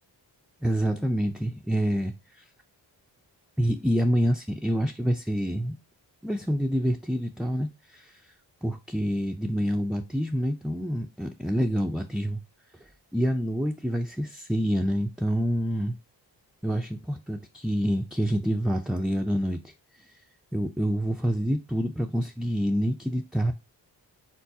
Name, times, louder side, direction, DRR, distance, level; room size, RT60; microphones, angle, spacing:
voice 1, 0.6-2.5 3.6-5.8 6.2-8.3 8.6-12.4 12.8-16.0 16.6-20.2 20.5-23.5, equal, ahead, 0.4 m, -27 dB
4.5 x 3.9 x 2.7 m
cardioid pair, 60°, 43 cm